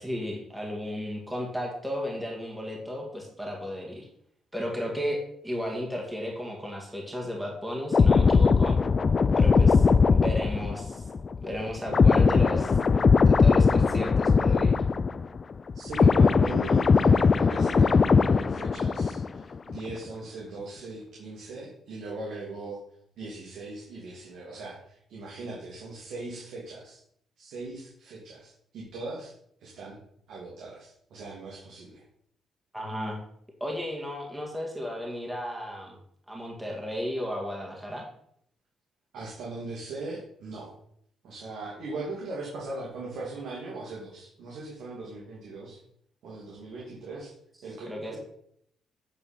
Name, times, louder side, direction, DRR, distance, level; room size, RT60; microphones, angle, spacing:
voice 1, 0.0-4.1 4.5-8.8 9.4-11.1 11.4-12.8 13.3-14.8 32.7-33.2 33.6-36.0 36.3-38.0 47.9-48.2, equal, 10° right, -1 dB, 2.2 m, -34 dB
sound 1, 7.9-15.4 15.7-19.4 19.7-19.9, left 5 dB, 35° left, 0.3 m, -20 dB
voice 2, 15.7-22.8 23.2-27.0 27.4-29.3 29.6-30.0 30.3-32.0 39.1-40.7 41.2-45.8 46.2-47.3 47.6-48.2, right 3 dB, 75° right, -4 dB, 2.4 m, -39 dB
8.8 x 4.4 x 5.8 m, 0.69 s
cardioid pair, 90°, 0 cm